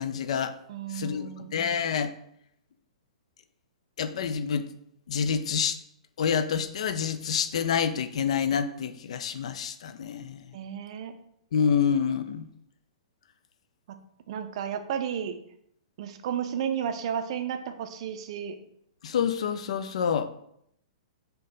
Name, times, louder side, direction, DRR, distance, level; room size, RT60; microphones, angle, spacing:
voice 1, 0.0-0.6 0.9-2.1 4.0-4.7 5.1-5.8 6.2-10.5 11.5-12.5 19.0-20.3, left 7 dB, 60° left, 11 dB, 0.3 m, -27 dB
voice 2, 0.7-1.6 10.5-11.1 13.9-14.0 14.3-15.4 16.0-18.6, right 8 dB, 50° right, 8 dB, 0.4 m, -33 dB
3.7 x 2.7 x 3.9 m, 0.72 s
figure-of-eight pair, 110°, 4 cm